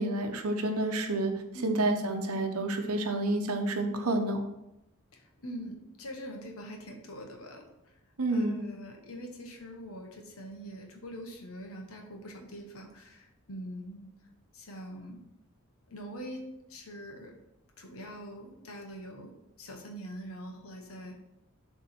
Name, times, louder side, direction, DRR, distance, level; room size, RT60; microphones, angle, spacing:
voice 1, 0.0-1.3 1.6-4.4 8.2-8.7, right 2 dB, 90° right, 5 dB, 0.9 m, -29 dB
voice 2, 1.5-1.9 5.1-7.7 8.3-14.1 14.5-15.2 15.9-16.4 16.7-17.3 17.8-21.1, equal, 80° left, 2 dB, 1.3 m, -43 dB
7.0 x 3.6 x 4.4 m, 0.89 s
head